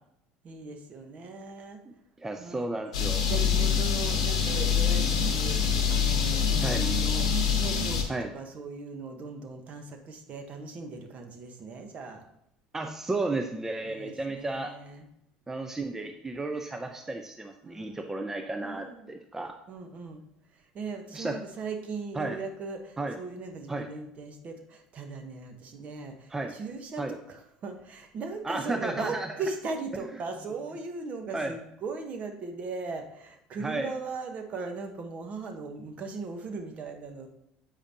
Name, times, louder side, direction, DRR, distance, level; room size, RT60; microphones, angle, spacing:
voice 1, 0.4-1.8 2.4-2.7 3.3-12.2 13.8-15.0 17.6-18.0 18.6-19.1 19.7-20.2 20.7-37.3, right 4 dB, 45° right, 5 dB, 1.0 m, -38 dB
voice 2, 1.9-3.3 6.6-6.8 8.1-8.3 12.7-14.7 15.5-19.5 21.1-21.4 22.1-22.4 23.0-23.2 23.7-23.9 26.3-26.5 27.0-27.2 28.4-29.4 29.9-30.2 31.3-31.6 33.6-33.9, right 2 dB, 15° right, 5 dB, 0.5 m, -33 dB
sound 1, 2.9-8.0, left 7 dB, 90° left, 0.9 m, -25 dB
7.4 x 5.0 x 2.7 m, 0.79 s
hypercardioid pair, 75°, 3 cm